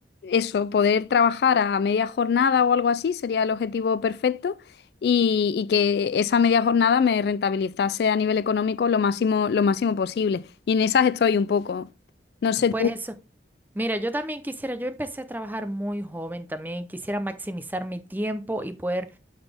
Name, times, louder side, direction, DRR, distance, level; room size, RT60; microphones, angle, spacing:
voice 1, 0.2-4.6 5.0-11.9 12.4-12.9, left 6 dB, 60° left, 0.3 m, -22 dB
voice 2, 13.7-19.1, right 1 dB, 10° right, 0.6 m, -30 dB
12.0 x 4.0 x 3.4 m
head